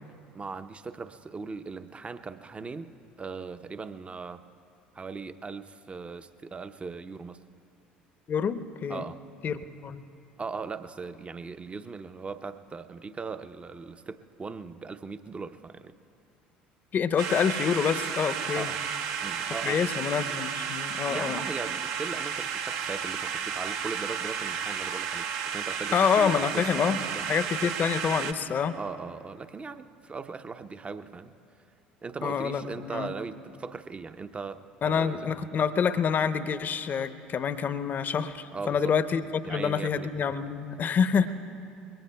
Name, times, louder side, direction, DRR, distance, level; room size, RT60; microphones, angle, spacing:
voice 1, 0.0-4.4 4.9-7.4 8.9-9.2 10.4-15.9 18.6-18.8 19.2-19.8 21.1-27.2 27.6-27.7 28.7-31.3 32.0-35.3 38.5-38.9 39.4-40.1, right 4 dB, 25° right, 10 dB, 0.7 m, -39 dB
voice 2, 8.3-9.1 9.4-10.0 16.9-18.7 19.6-21.4 25.9-27.0 27.3-28.8 32.2-33.1 34.8-41.3, left 7 dB, 40° left, 12 dB, 0.8 m, -27 dB
sound 1, 17.2-28.3, right 7 dB, 60° right, 0.9 m, -32 dB
27.5 x 22.0 x 2.3 m, 2.5 s
figure-of-eight pair, 60°, 5 cm